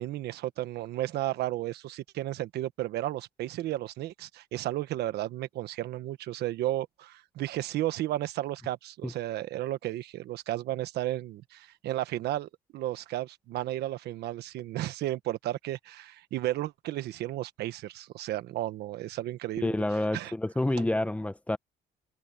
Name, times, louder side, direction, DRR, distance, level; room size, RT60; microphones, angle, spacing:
voice 1, 0.0-19.8 20.1-20.3, right 14 dB, 75° right, 1.3 m, -33 dB
voice 2, 19.6-21.6, left 1 dB, 10° left, 0.9 m, -28 dB
cardioid pair, 110°, 17 cm